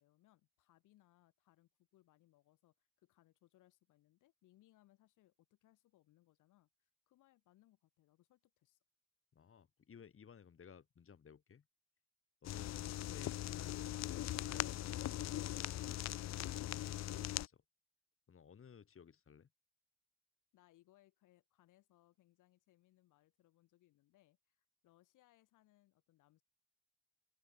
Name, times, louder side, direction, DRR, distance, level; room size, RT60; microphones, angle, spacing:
voice 1, 0.0-8.8 20.5-26.4, left 16 dB, 90° left, 3.3 m, -71 dB
voice 2, 9.3-11.6 12.4-16.1 16.4-17.6 18.3-19.5, left 7 dB, 45° left, 3.5 m, -58 dB
sound 1, 12.4-17.5, left 13 dB, 60° left, 0.6 m, -40 dB
open air
cardioid pair, 90°, 30 cm